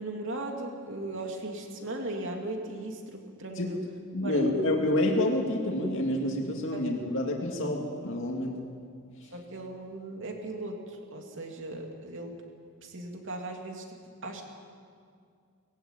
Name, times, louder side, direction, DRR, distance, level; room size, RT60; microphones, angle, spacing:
voice 1, 0.0-3.8 4.2-4.4 6.7-6.9 9.3-12.3 12.8-14.0 14.2-14.4, right 2 dB, 60° right, 2 dB, 2.8 m, -37 dB
voice 2, 4.1-8.6, left 1 dB, 60° left, 1 dB, 2.3 m, -28 dB
20.0 x 15.0 x 9.0 m, 2.2 s
head